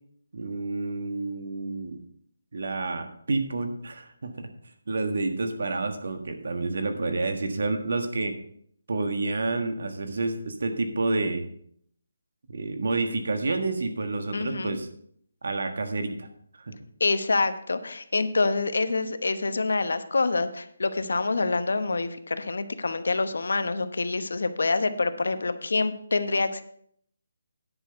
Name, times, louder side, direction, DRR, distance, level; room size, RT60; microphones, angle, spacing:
voice 1, 0.3-2.0 2.5-4.5 4.9-8.4 8.9-11.5 12.5-14.9 15.4-16.3 16.6-16.7, right 3 dB, 60° right, 7 dB, 1.5 m, -29 dB
voice 2, 14.3-14.8 17.0-26.6, left 3 dB, 75° left, 10 dB, 0.9 m, -26 dB
10.0 x 6.2 x 5.7 m, 0.66 s
hypercardioid pair, 170°, 0 cm